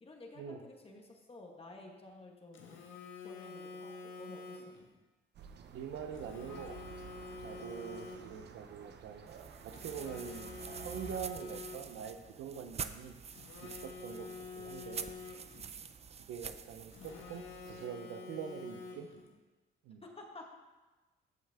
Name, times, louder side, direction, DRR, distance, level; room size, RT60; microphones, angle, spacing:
voice 1, 0.0-2.8 3.2-4.6 20.0-20.5, left 2 dB, 30° left, 1 dB, 1.7 m, -52 dB
Telephone, 2.5-4.9 6.1-8.5 9.7-12.1 13.3-15.7 16.9-19.3, left 4 dB, 80° left, 1.4 m, -48 dB
sound 1, 5.3-11.2, right 6 dB, 60° right, 0.8 m, -51 dB
voice 2, 5.7-6.8 7.4-9.2 9.6-13.2 13.6-14.3 14.6-15.1 16.3-19.1 19.8-20.0, right 7 dB, 90° right, 7 dB, 0.9 m, -44 dB
sound 2, 9.3-17.9, right 6 dB, 30° right, 0.5 m, -47 dB
14.0 x 5.5 x 3.6 m, 1.2 s
cardioid pair, 90°, 20 cm